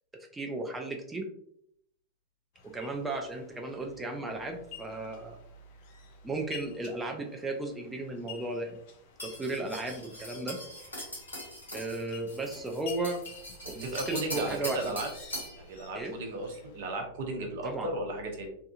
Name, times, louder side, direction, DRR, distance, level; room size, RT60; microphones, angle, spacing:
voice 1, 0.3-1.3 2.7-5.4 6.2-8.7 9.2-10.6 11.7-13.2 13.7-14.9 15.9-16.1 17.6-17.9, right 2 dB, 10° right, 2 dB, 0.4 m, -35 dB
sound 1, 2.5-16.9, left 6 dB, 55° left, 0.5 m, -52 dB
sound 2, 9.2-15.6, equal, 80° left, 1.2 m, -41 dB
voice 2, 13.6-15.1 15.6-18.5, right 2 dB, 60° right, 3 dB, 0.6 m, -35 dB
2.7 x 2.3 x 2.4 m, 0.71 s
figure-of-eight pair, 95°, 0 cm